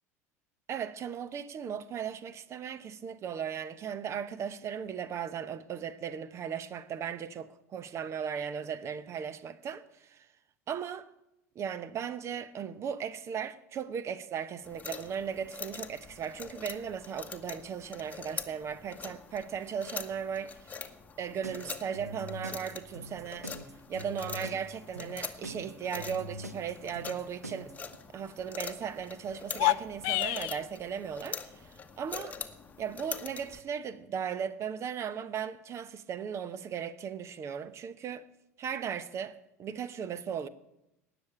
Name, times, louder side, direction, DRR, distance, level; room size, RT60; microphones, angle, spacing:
voice 1, 0.7-10.3 10.7-11.1 11.5-20.8 21.2-23.5 23.9-27.7 28.1-32.4 32.8-38.3 38.6-40.5, right 7 dB, 35° right, 0.9 m, -37 dB
sound 1, 14.6-33.6, left 5 dB, 20° left, 1.2 m, -44 dB
sound 2, 21.4-28.0, equal, 90° right, 1.0 m, -43 dB
sound 3, 29.5-30.6, left 22 dB, 50° left, 0.4 m, -28 dB
18.5 x 7.0 x 8.7 m
figure-of-eight pair, 75°, 8 cm